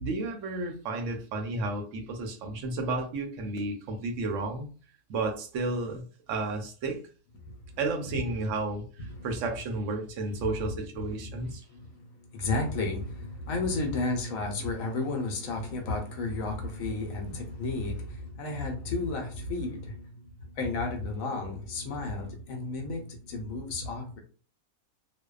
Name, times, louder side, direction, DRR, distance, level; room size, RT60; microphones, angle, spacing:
voice 1, 0.0-4.7 5.1-6.0 6.3-7.0 7.8-11.6, right 3 dB, 70° right, 0.9 m, -32 dB
voice 2, 9.1-9.4 11.0-24.2, left 3 dB, 70° left, 1.0 m, -33 dB
2.6 x 2.1 x 2.3 m
omnidirectional pair, 1.5 m